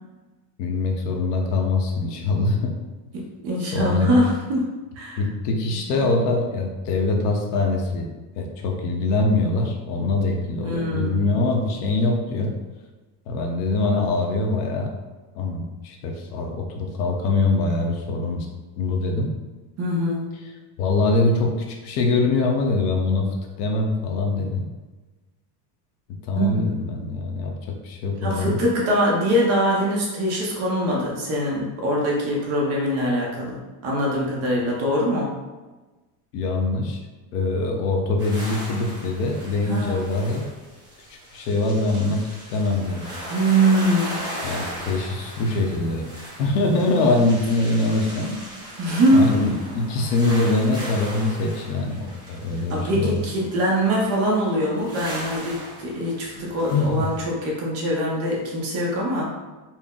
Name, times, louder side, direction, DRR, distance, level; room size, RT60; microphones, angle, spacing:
voice 1, 0.6-2.8 3.7-4.2 5.2-12.5 13.3-14.9 15.3-18.5 18.8-19.3 20.8-24.7 26.1-28.6 36.3-37.0 37.3-40.4 41.1-42.2 42.5-43.1 44.4-46.1 46.4-48.4 49.1-53.2 56.7-57.1, left 3 dB, 70° left, 1 dB, 0.9 m, -23 dB
voice 2, 3.1-5.2 5.9-6.0 10.6-11.4 19.8-20.3 26.4-26.8 28.2-35.3 39.6-40.2 43.3-44.2 48.8-49.3 52.7-59.3, equal, 30° right, -3 dB, 0.6 m, -23 dB
sound 1, 38.2-57.3, equal, 10° right, 1.1 m, -38 dB
4.4 x 2.0 x 3.6 m, 1.2 s
cardioid pair, 175°, 48 cm